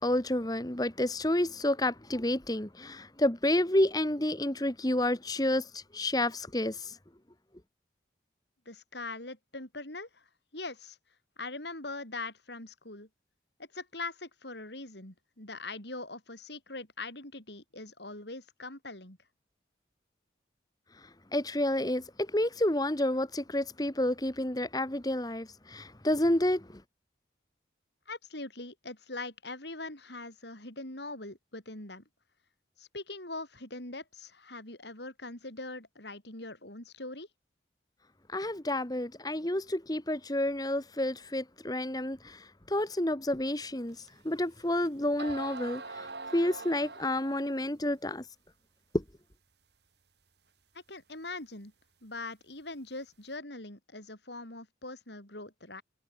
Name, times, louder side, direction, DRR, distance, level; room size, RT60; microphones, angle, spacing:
voice 1, 0.0-6.9 21.3-26.8 38.3-44.0 44.2-46.1 46.3-48.2 48.9-49.0, left 1 dB, 20° left, 1.5 m, -30 dB
voice 2, 8.7-10.2 10.5-11.0 11.4-13.1 13.6-19.2 28.1-32.0 32.8-37.3 50.7-51.7 52.0-55.8, left 2 dB, 65° left, 6.9 m, -42 dB
sound 1, 44.1-44.2 44.8-44.9 45.2-47.6, right 3 dB, 65° right, 3.7 m, -42 dB
head